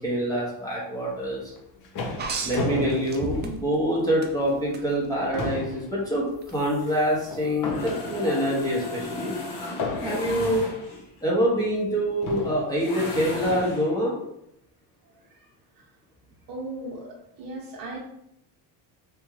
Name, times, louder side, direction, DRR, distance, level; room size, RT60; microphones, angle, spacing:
voice 1, 0.0-1.5 2.4-6.2 6.5-9.4 10.0-10.6 11.2-14.1, equal, 10° left, -6 dB, 0.9 m, -25 dB
sound 1, 1.4-4.1 4.5-4.7 5.0-8.5 9.8-10.5 11.4-11.5 12.2-12.7, left 2 dB, 45° left, 0.8 m, -33 dB
sound 2, 2.2-3.8 4.2-4.8 6.4-6.5, right 3 dB, 25° right, 0.3 m, -33 dB
sound 3, 6.4-11.2 12.7-13.9, left 1 dB, 70° left, 1.5 m, -36 dB
voice 2, 16.5-18.0, right 2 dB, 50° right, -4 dB, 0.8 m, -37 dB
3.6 x 2.6 x 3.0 m, 0.76 s
cardioid pair, 140°, 44 cm